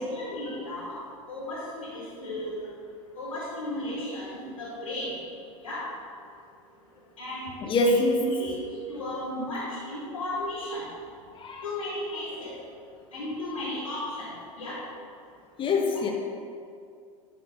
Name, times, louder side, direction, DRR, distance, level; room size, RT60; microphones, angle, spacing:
voice 1, 0.1-1.0 1.3-2.6 3.1-5.1 5.6-5.8 7.2-7.5 8.2-8.6 8.9-10.8 11.6-12.5 13.1-14.3 14.6-14.8, left 1 dB, 80° left, -7 dB, 2.4 m, -34 dB
voice 2, 7.6-8.3 11.4-11.6 15.6-16.1, left 2 dB, 30° left, 1 dB, 1.5 m, -24 dB
11.5 x 6.7 x 3.8 m, 2.3 s
figure-of-eight pair, 85°, 17 cm